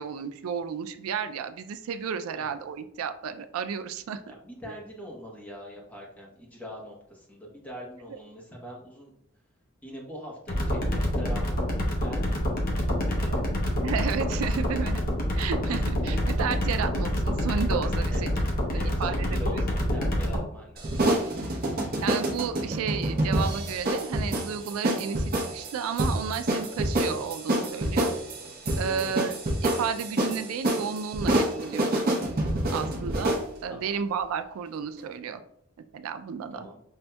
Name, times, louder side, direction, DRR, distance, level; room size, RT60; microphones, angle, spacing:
voice 1, 0.0-4.3 8.1-8.2 13.8-15.0 15.4-18.3 18.7-19.4 22.0-28.1 28.8-29.4 29.6-32.2 32.7-35.4 35.9-36.7, right 7 dB, 85° right, 9 dB, 0.3 m, -32 dB
voice 2, 4.3-9.1 9.8-12.5 13.1-13.5 18.1-18.3 18.7-20.9 28.8-29.1 33.7-34.0 36.5-36.8, equal, 5° left, -4 dB, 1.0 m, -42 dB
sound 1, 10.5-20.4, equal, 45° left, 0.8 m, -27 dB
sound 2, 20.8-33.5, right 1 dB, 45° right, 0.7 m, -27 dB
5.5 x 2.6 x 2.2 m, 0.72 s
head